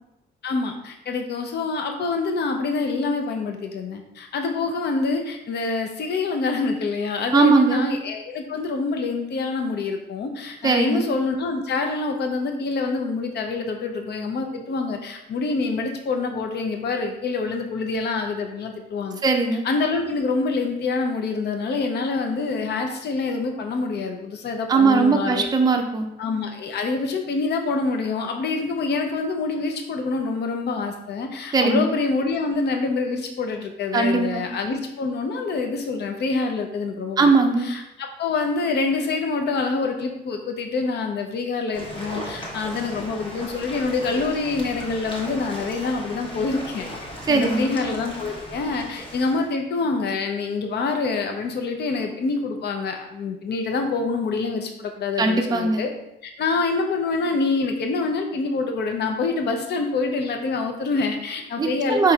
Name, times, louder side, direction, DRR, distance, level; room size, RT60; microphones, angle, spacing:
voice 1, 0.4-19.2 19.6-25.5 26.2-37.3 37.6-46.9 47.3-55.9 56.2-62.1, left 3 dB, 55° left, 4 dB, 0.6 m, -26 dB
voice 2, 7.3-7.9 10.6-11.0 19.2-19.7 24.7-26.1 31.5-31.9 33.9-34.5 37.2-37.7 47.3-47.7 55.2-55.8 61.6-62.1, right 4 dB, 20° right, 3 dB, 0.5 m, -19 dB
sound 1, 41.7-49.5, equal, 25° left, 1.1 m, -36 dB
4.1 x 3.9 x 2.3 m, 0.84 s
cardioid pair, 90°, 20 cm